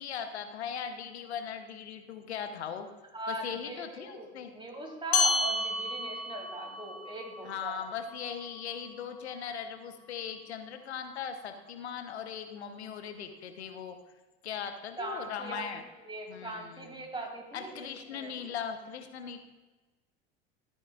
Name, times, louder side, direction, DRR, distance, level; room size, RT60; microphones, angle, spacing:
voice 1, 0.0-2.9 3.3-4.5 7.4-14.0 14.4-15.8 16.3-16.9 17.5-19.4, left 7 dB, 80° left, 8 dB, 0.9 m, -39 dB
voice 2, 3.1-7.8 15.0-15.6 16.0-18.3, right 2 dB, 15° right, 0 dB, 2.8 m, -40 dB
sound 1, 5.1-9.9, left 3 dB, 45° left, 1.2 m, -33 dB
14.0 x 8.7 x 2.4 m, 1.2 s
hypercardioid pair, 75°, 33 cm